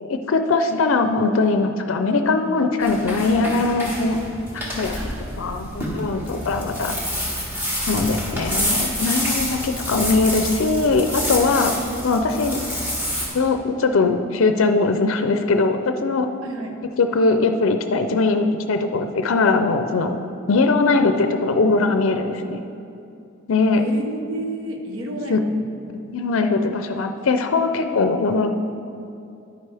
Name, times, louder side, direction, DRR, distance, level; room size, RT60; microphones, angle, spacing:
voice 1, 0.0-4.2 4.8-5.0 5.4-7.0 7.9-11.7 12.0-12.6 13.3-16.3 17.0-20.2 20.5-22.6 23.5-23.8 25.3-25.4 26.1-28.5, left 3 dB, 70° left, 7 dB, 0.5 m, -20 dB
sound 1, 2.8-13.3, equal, 10° right, 1.4 m, -28 dB
voice 2, 5.0-5.3 6.3-6.5 16.4-16.7 23.8-25.6, right 1 dB, 75° right, 3 dB, 1.0 m, -31 dB
10.0 x 9.0 x 3.4 m, 2.6 s
head